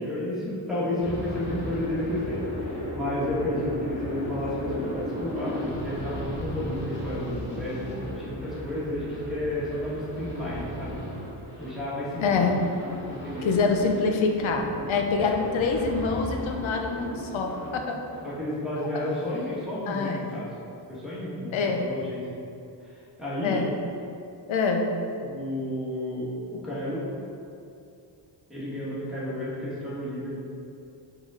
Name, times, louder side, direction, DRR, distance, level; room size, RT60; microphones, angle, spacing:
voice 1, 0.0-11.0 11.6-12.4 13.1-13.5 15.2-15.4 18.2-20.5 20.9-22.4 22.8-23.6 25.2-27.1 28.5-30.3, left 1 dB, ahead, -9 dB, 1.5 m, -32 dB
sound 1, 1.0-17.7 18.0-18.3, equal, 25° left, 1.4 m, -36 dB
voice 2, 12.2-12.6 13.4-18.0 19.9-20.2 21.5-21.9 23.4-23.7 24.5-24.9, left 4 dB, 90° left, 3 dB, 0.7 m, -25 dB
5.3 x 3.8 x 4.7 m, 2.6 s
wide cardioid pair, 170°, 46 cm